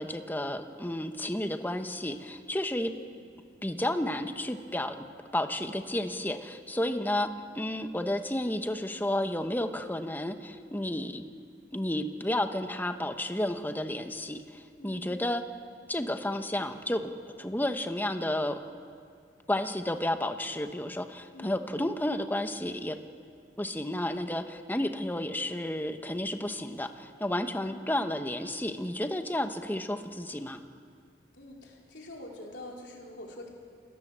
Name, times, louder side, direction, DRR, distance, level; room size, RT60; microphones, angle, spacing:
voice 1, 0.0-2.9 3.6-5.0 5.3-7.3 7.5-11.2 11.7-15.4 15.9-17.1 17.4-18.6 19.5-23.0 23.6-30.6, left 1 dB, 10° left, 7 dB, 1.1 m, -32 dB
voice 2, 2.9-3.2 14.8-15.4 21.3-21.6 27.6-27.9 31.3-33.5, left 1 dB, 70° left, -1 dB, 4.2 m, -46 dB
28.0 x 18.0 x 7.5 m, 2.2 s
head